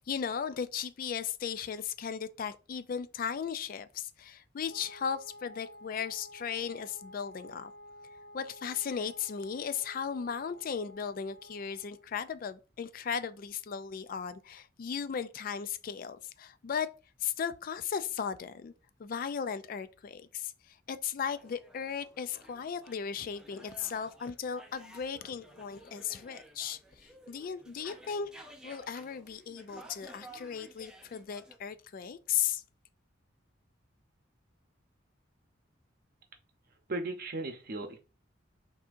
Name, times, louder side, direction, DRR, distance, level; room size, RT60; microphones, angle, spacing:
voice 1, 0.0-7.7 8.3-16.9 17.2-18.7 19.0-20.5 20.9-26.8 27.3-28.3 28.6-32.6, left 7 dB, 45° left, 0.3 m, -36 dB
Wind instrument woodwind instrument, 4.6-12.1, left 1 dB, 60° left, 2.0 m, -52 dB
sound 1, 21.3-31.6, right 1 dB, 5° right, 0.6 m, -54 dB
voice 2, 36.9-38.0, right 2 dB, 50° right, 0.7 m, -36 dB
6.0 x 2.7 x 2.5 m
head